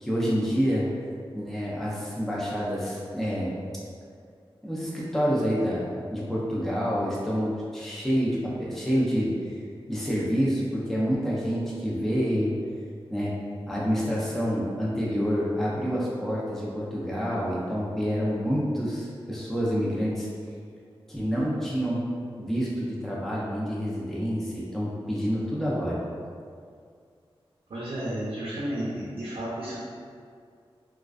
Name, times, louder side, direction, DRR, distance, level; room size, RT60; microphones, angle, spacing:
voice 1, 0.0-0.8 1.3-3.6 4.6-5.8 6.1-9.6 9.9-12.5 13.1-13.3 13.7-20.3 21.1-22.0 22.4-26.0, equal, 5° left, -6 dB, 0.5 m, -27 dB
voice 2, 27.7-29.8, right 1 dB, 65° right, -8 dB, 0.5 m, -32 dB
2.3 x 2.2 x 2.4 m, 2.2 s
cardioid pair, 55°, 10 cm